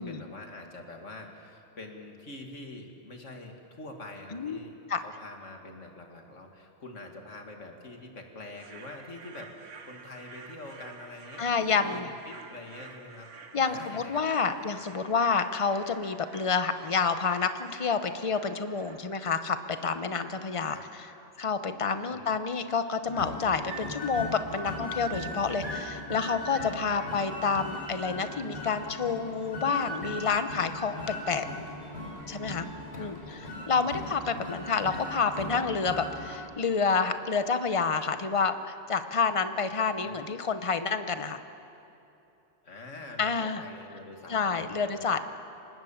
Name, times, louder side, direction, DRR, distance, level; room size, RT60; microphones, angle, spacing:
voice 1, 0.0-13.3 13.6-14.2 14.5-14.7 20.7-20.8 22.1-22.3 27.0-27.2 32.9-33.2 33.8-34.1 40.0-40.3 42.6-45.2, left 2 dB, 85° left, 3 dB, 2.6 m, -45 dB
sound 1, 8.5-21.3, right 4 dB, 85° right, 1.7 m, -51 dB
voice 2, 11.4-12.1 13.5-20.8 21.4-31.4 32.3-32.6 33.0-33.1 33.7-41.4 43.2-43.6 44.3-45.2, left 5 dB, 30° left, 10 dB, 0.9 m, -29 dB
sound 2, 23.0-36.4, left 1 dB, 60° left, 5.5 m, -39 dB
25.0 x 19.5 x 7.3 m, 3.0 s
omnidirectional pair, 1.2 m